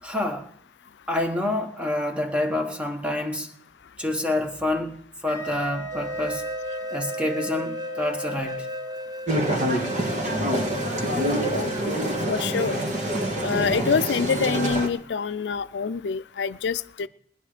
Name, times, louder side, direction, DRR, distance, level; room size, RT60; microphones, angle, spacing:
voice 1, 0.0-0.5 1.1-3.5 4.0-6.4 6.9-8.7 11.9-12.0, left 1 dB, 5° right, 1.2 m, -27 dB
Wind instrument woodwind instrument, 5.3-9.1, right 1 dB, 60° right, 2.6 m, -36 dB
sound 1, 5.9-13.5, equal, 25° right, 0.5 m, -36 dB
sound 2, 9.3-14.9, right 1 dB, 45° right, 1.9 m, -26 dB
voice 2, 12.3-12.8 13.4-17.1, left 5 dB, 85° left, 0.5 m, -26 dB
20.0 x 9.8 x 5.0 m
head